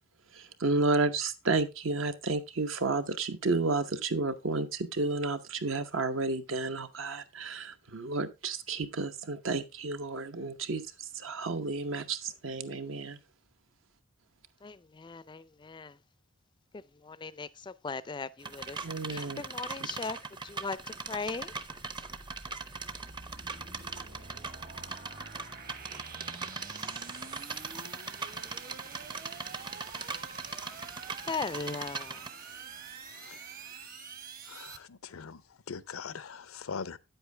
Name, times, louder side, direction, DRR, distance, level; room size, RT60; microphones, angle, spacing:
voice 1, 0.4-10.8 11.1-13.2 18.8-19.4, right 3 dB, 70° right, 0.9 m, -31 dB
voice 2, 14.6-15.9 17.0-18.8 19.1-20.2 20.4-20.8 21.1-21.5 31.2-32.2, left 4 dB, 20° left, 0.4 m, -38 dB
sound 1, 18.4-32.3, right 4 dB, 20° right, 0.6 m, -40 dB
sound 2, 21.0-34.8, right 5 dB, 45° right, 1.2 m, -47 dB
voice 3, 34.5-35.4 35.7-37.0, left 6 dB, 90° left, 0.6 m, -41 dB
9.1 x 8.1 x 3.3 m
head